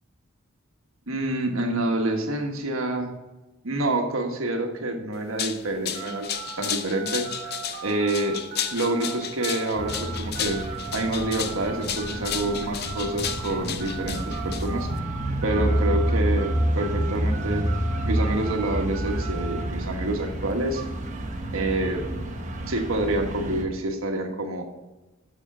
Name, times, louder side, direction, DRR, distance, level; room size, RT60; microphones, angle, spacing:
voice 1, 1.1-3.1 3.6-6.3 6.6-7.3 7.8-8.4 8.7-15.1 15.4-17.7 18.1-20.8 21.5-22.1 22.7-24.6, right 2 dB, 80° right, 3 dB, 1.4 m, -27 dB
sound 1, 5.1-15.0, left 9 dB, 50° left, 0.6 m, -33 dB
sound 2, 5.9-16.1 16.4-19.6, right 8 dB, 50° right, 1.7 m, -39 dB
sound 3, 9.8-23.7, right 1 dB, 35° right, 1.0 m, -29 dB
7.2 x 6.5 x 5.6 m, 1.1 s
head